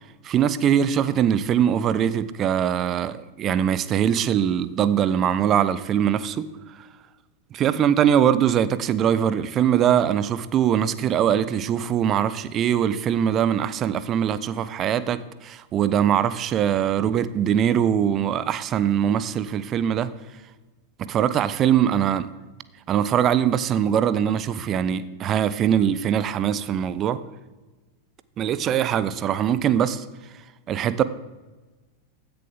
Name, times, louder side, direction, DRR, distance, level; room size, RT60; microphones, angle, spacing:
voice 1, 0.2-6.5 7.5-20.1 21.1-22.3 22.9-27.2 28.4-30.0 30.7-31.0, right 9 dB, 30° right, 0.5 m, -22 dB
15.0 x 6.8 x 3.8 m
figure-of-eight pair, 90°, 0 cm